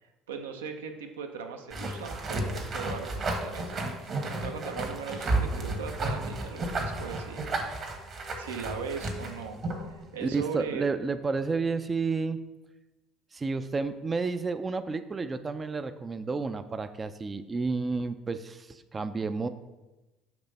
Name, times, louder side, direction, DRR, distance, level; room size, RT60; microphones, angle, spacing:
voice 1, 0.0-7.5 7.7-7.9 8.4-9.6 10.1-10.9, right 6 dB, 80° right, 5 dB, 0.6 m, -39 dB
sound 1, 1.7-9.9, right 2 dB, 45° right, 1.3 m, -32 dB
voice 2, 10.2-12.4 13.3-19.5, right 4 dB, 25° right, 10 dB, 0.3 m, -31 dB
6.0 x 3.3 x 5.3 m, 1.1 s
hypercardioid pair, 60°, 0 cm